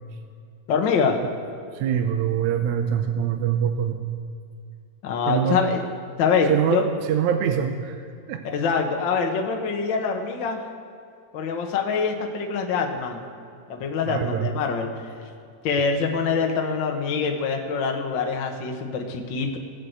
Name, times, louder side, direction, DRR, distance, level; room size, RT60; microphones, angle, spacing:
voice 1, 0.7-1.2 5.0-5.8 6.2-6.8 8.4-10.6 11.3-13.2 13.7-14.9 15.6-19.6, left 5 dB, 75° left, 3 dB, 1.0 m, -24 dB
voice 2, 1.7-4.0 5.3-5.6 6.5-6.8 7.1-8.0 8.3-8.4 14.1-14.5, right 9 dB, 75° right, 6 dB, 1.8 m, -24 dB
17.5 x 7.9 x 8.1 m, 2.4 s
omnidirectional pair, 4.1 m